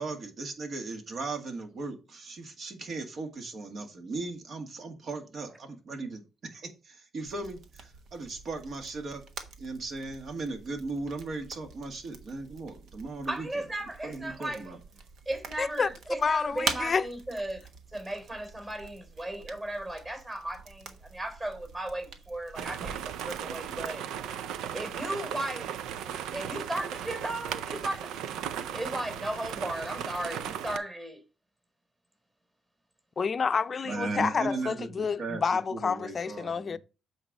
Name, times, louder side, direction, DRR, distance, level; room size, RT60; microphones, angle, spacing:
voice 1, 0.0-6.2 6.5-9.2 9.6-13.5 14.0-14.8 33.8-35.4 35.7-36.8, right 3 dB, 55° right, 2.0 m, -37 dB
sound 1, 7.2-23.9, right 5 dB, 70° right, 1.2 m, -44 dB
voice 2, 13.3-14.7 15.3-17.6 17.9-24.0 24.7-25.8 26.3-28.2 28.7-31.2, right 1 dB, 25° right, 3.4 m, -36 dB
voice 3, 15.6-15.9 16.2-17.1 33.2-36.8, left 5 dB, 40° left, 0.5 m, -29 dB
sound 2, 22.5-30.8, right 9 dB, 90° right, 0.5 m, -36 dB
8.0 x 4.4 x 5.1 m
cardioid pair, 90°, 0 cm